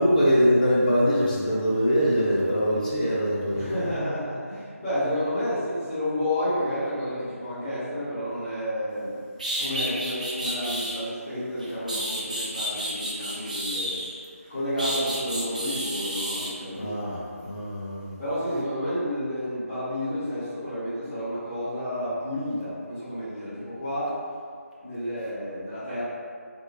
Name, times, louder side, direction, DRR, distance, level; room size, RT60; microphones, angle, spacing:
voice 1, 0.0-3.9 16.7-18.1, equal, 30° left, -7 dB, 0.6 m, -23 dB
voice 2, 3.5-9.2 9.6-14.0 14.5-16.9 18.2-24.2 24.8-26.0, equal, 15° left, -18 dB, 1.3 m, -30 dB
sound 1, 9.0-9.1 9.4-11.0 11.6-14.2 14.8-16.5, equal, 30° right, 0.3 m, -31 dB
2.8 x 2.4 x 2.8 m, 2.1 s
figure-of-eight pair, 160°, 8 cm